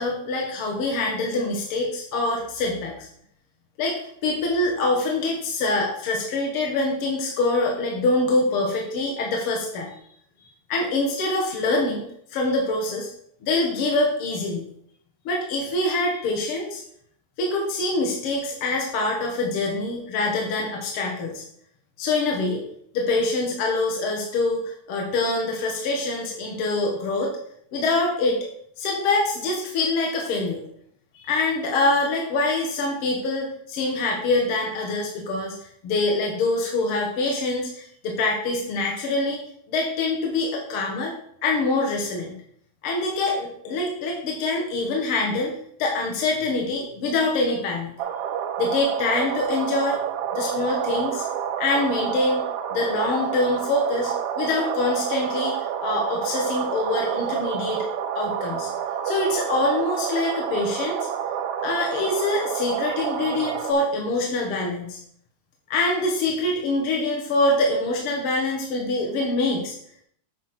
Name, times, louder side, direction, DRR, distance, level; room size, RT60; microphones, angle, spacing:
voice 1, 0.0-3.1 3.8-9.9 10.7-13.1 13.4-14.7 15.2-16.8 17.4-21.4 22.0-22.6 22.9-27.3 27.7-28.5 28.8-30.6 31.1-39.4 39.7-41.1 41.4-42.3 42.8-45.5 45.8-47.9 48.6-50.0 50.3-51.2 51.6-52.4 52.7-57.9 58.1-58.7 59.0-61.0 61.6-65.0 65.7-69.7, left 2 dB, 60° left, -1 dB, 1.7 m, -25 dB
sound 1, 48.0-63.7, right 9 dB, 80° right, 1.4 m, -29 dB
7.7 x 4.1 x 5.9 m, 0.68 s
omnidirectional pair, 3.4 m